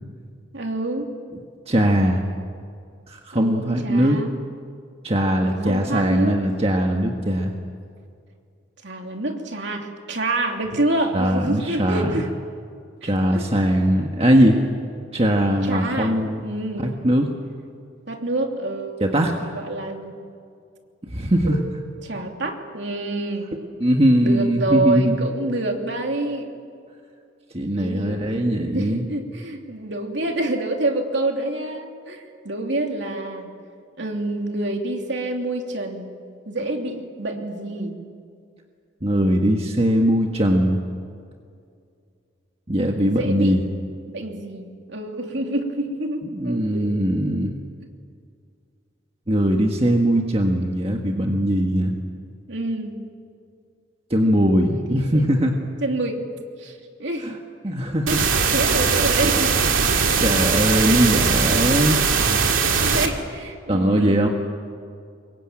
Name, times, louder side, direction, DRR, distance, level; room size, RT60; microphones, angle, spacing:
voice 1, 0.5-1.1 3.3-4.4 5.4-6.4 8.8-12.3 13.0-13.6 15.6-16.9 18.1-19.0 19.4-20.1 21.4-21.6 22.0-23.7 24.2-26.5 27.8-28.2 28.7-33.5 34.0-36.1 36.5-37.9 43.0-43.6 44.1-46.9 52.5-53.0 54.6-55.3 55.8-56.2 56.6-57.3 58.1-58.2 58.5-59.5 62.8-64.3, right 2 dB, 60° right, 2 dB, 2.9 m, -27 dB
voice 2, 1.7-2.3 3.1-4.2 5.0-7.5 11.1-12.2 13.0-14.6 15.1-16.4 16.8-17.3 19.0-19.3 21.0-21.6 23.8-25.2 27.5-29.0 39.0-40.8 42.7-43.6 46.3-47.5 49.3-51.9 54.1-55.5 57.2-57.3 57.6-58.2 60.2-62.0 63.7-64.3, equal, 30° right, 2 dB, 1.6 m, -20 dB
sound 1, 58.1-63.1, right 5 dB, 90° right, 2.4 m, -20 dB
25.0 x 22.5 x 9.0 m, 2.3 s
head